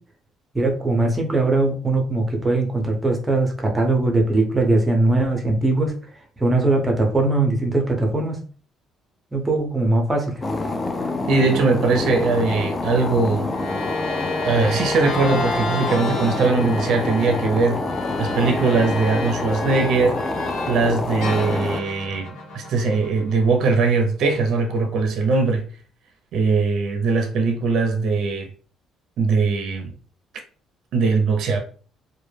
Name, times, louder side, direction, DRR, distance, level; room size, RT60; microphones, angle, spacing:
voice 1, 0.5-5.9 6.4-8.4 9.3-10.4, right 2 dB, 15° right, 0.6 m, -20 dB
sound 1, 10.4-21.8, left 2 dB, 25° left, 0.3 m, -26 dB
voice 2, 11.3-13.5 14.4-17.8 18.2-20.2 20.7-22.3 22.5-25.6 26.3-28.5 29.2-29.9 30.9-31.6, right 4 dB, 65° right, 0.5 m, -20 dB
sound 2, 13.5-20.9 21.2-23.6, left 3 dB, 75° left, 0.7 m, -31 dB
2.1 x 2.0 x 3.1 m
cardioid pair, 115°, 0 cm